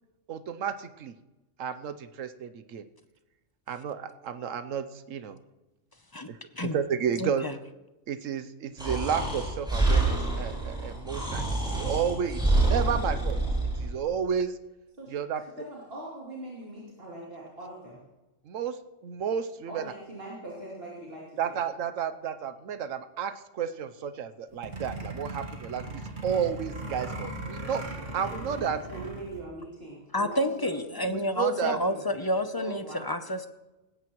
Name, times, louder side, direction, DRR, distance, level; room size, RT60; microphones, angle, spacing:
voice 1, 0.3-1.1 1.6-2.8 3.7-5.4 6.3-6.4 6.6-7.5 8.1-13.4 13.8-14.5 15.1-15.4 18.5-18.8 19.0-19.8 21.4-28.8 31.1-31.8, right 7 dB, 90° right, 11 dB, 1.2 m, -32 dB
voice 2, 7.2-7.5 30.1-33.5, left 1 dB, 25° left, 9 dB, 0.6 m, -29 dB
Breathing, 8.8-13.9, right 2 dB, 5° right, 6.8 m, -27 dB
voice 3, 15.0-18.0 19.7-21.6 28.3-28.6 28.9-31.2 31.6-32.0 32.6-33.1, right 1 dB, 50° right, -6 dB, 3.4 m, -42 dB
sound 1, 24.5-29.4, right 2 dB, 65° right, 2.5 m, -38 dB
18.5 x 16.5 x 3.1 m, 1.1 s
omnidirectional pair, 1.3 m